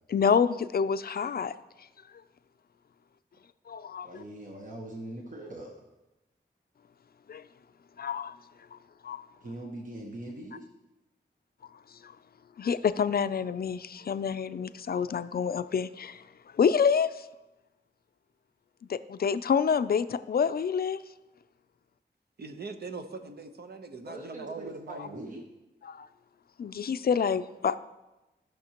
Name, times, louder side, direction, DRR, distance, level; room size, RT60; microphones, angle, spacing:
voice 1, 0.1-1.5 3.7-4.1 7.3-7.4 8.0-8.3 8.7-8.8 9.0-9.2 12.0-12.1 12.6-16.2 16.5-17.3 18.9-21.0 25.9-26.1 26.6-27.8, left 6 dB, 55° left, 0.4 m, -27 dB
voice 2, 4.0-5.8 9.4-10.6 24.0-25.5, right 1 dB, 45° right, 1.1 m, -42 dB
voice 3, 22.4-25.4, right 3 dB, 60° right, 0.9 m, -41 dB
16.0 x 6.0 x 2.9 m
wide cardioid pair, 80°, 18 cm